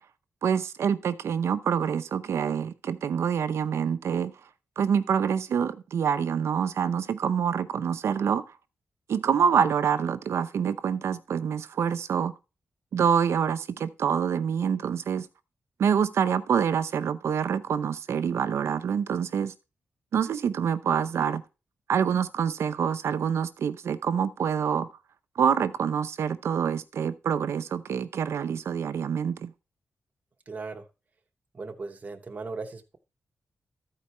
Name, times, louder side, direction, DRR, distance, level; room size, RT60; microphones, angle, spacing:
voice 1, 0.4-4.3 4.8-8.4 9.1-12.3 12.9-15.3 15.8-19.5 20.1-21.4 21.9-24.9 25.4-29.5, right 7 dB, 80° right, 0.7 m, -26 dB
voice 2, 30.5-30.8 31.5-33.0, right 4 dB, 35° right, 0.9 m, -37 dB
13.5 x 4.7 x 4.2 m
wide cardioid pair, 150°, 5 cm